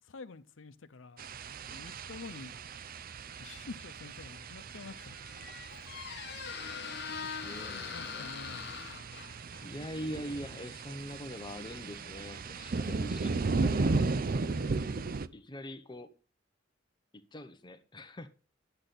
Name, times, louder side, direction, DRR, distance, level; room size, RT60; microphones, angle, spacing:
voice 1, 0.0-1.2 1.7-2.5 3.4-5.5 6.3-6.5 7.1-7.3 7.6-9.1, left 3 dB, 85° left, 0.7 m, -48 dB
sound 1, 1.2-15.3, right 3 dB, 50° right, 0.5 m, -36 dB
Squeak, 4.6-13.4, left 7 dB, 55° left, 0.9 m, -44 dB
voice 2, 7.4-8.3 9.6-13.4 13.6-14.1 15.3-16.1 17.1-18.3, equal, 25° left, 0.8 m, -43 dB
11.0 x 7.8 x 4.1 m
head